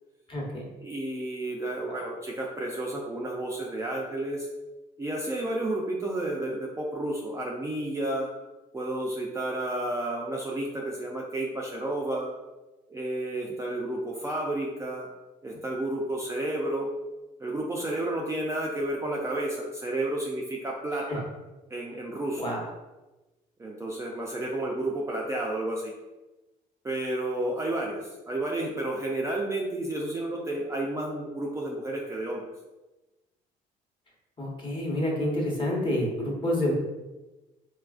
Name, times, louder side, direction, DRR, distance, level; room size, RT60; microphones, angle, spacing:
voice 1, 0.3-0.6 21.1-21.2 22.4-22.6 34.4-36.7, left 1 dB, 30° left, -2 dB, 1.0 m, -28 dB
voice 2, 0.8-4.5 5.0-8.3 8.7-12.3 12.9-15.1 15.4-16.9 17.4-21.3 21.7-22.5 23.6-25.9 26.8-32.5, right 1 dB, 15° right, -3 dB, 0.4 m, -31 dB
4.1 x 2.3 x 2.4 m, 1.1 s
cardioid pair, 110°, 17 cm